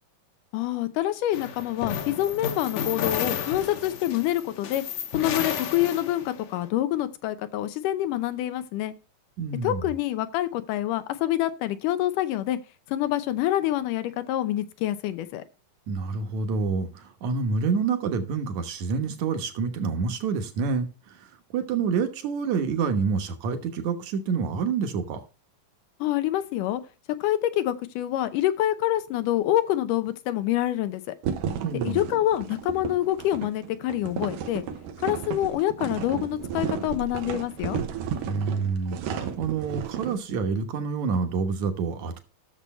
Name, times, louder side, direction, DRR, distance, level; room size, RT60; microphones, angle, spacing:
voice 1, 0.5-4.8 5.1-8.9 9.6-12.6 12.9-15.4 26.0-26.8 27.2-31.2 31.8-34.6 35.0-37.8, left 13 dB, 85° left, 2.3 m, -26 dB
sound 1, 1.3-6.5, left 8 dB, 65° left, 2.3 m, -32 dB
voice 2, 9.4-9.8 15.9-25.2 31.6-32.0 38.3-42.2, right 5 dB, 65° right, 2.5 m, -28 dB
sound 2, 31.2-40.2, right 8 dB, 90° right, 2.6 m, -33 dB
12.5 x 6.9 x 4.3 m
omnidirectional pair, 3.6 m